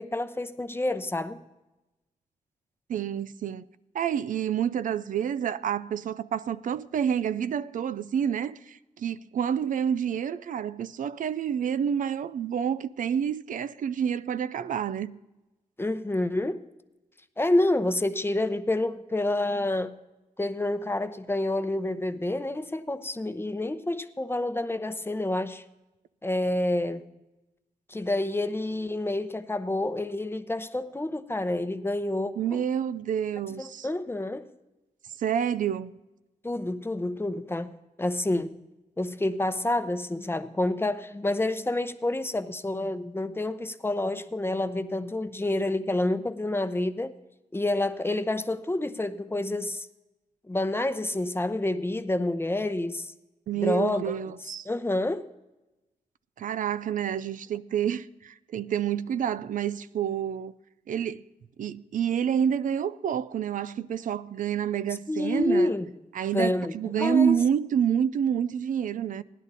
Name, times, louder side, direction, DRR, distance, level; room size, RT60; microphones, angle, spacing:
voice 1, 0.0-1.4 15.8-16.6 17.4-20.0 20.4-25.6 26.2-27.1 27.9-32.6 33.6-34.5 36.4-37.7 38.0-38.6 39.0-47.1 47.5-49.9 50.5-53.1 53.6-54.0 54.7-55.3 65.1-65.9 66.3-67.4, left 1 dB, 15° left, 0.7 m, -28 dB
voice 2, 2.9-3.6 3.9-15.2 32.4-33.9 35.2-35.9 53.5-54.7 56.4-60.5 60.9-61.2 61.6-65.7 66.1-69.2, right 8 dB, 75° right, 0.4 m, -28 dB
16.0 x 11.0 x 4.1 m
cardioid pair, 85°, 14 cm